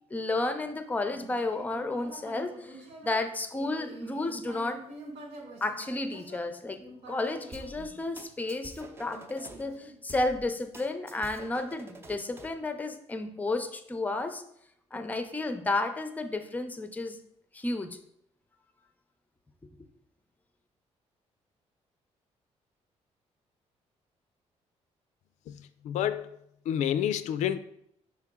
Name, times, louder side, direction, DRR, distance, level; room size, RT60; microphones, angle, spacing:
voice 1, 0.1-4.8 5.6-14.4 14.9-17.2 17.5-18.0, left 2 dB, 15° left, 8 dB, 0.6 m, -32 dB
Human voice, 1.1-8.5 9.0-10.5, right 2 dB, 65° right, 1.2 m, -47 dB
sound 1, 7.5-9.6 10.1-12.6, right 1 dB, 20° right, 0.7 m, -47 dB
voice 2, 25.5-26.4 26.7-27.6, left 10 dB, 80° left, 12 dB, 0.4 m, -29 dB
5.7 x 4.5 x 3.6 m, 0.72 s
cardioid pair, 125°, 12 cm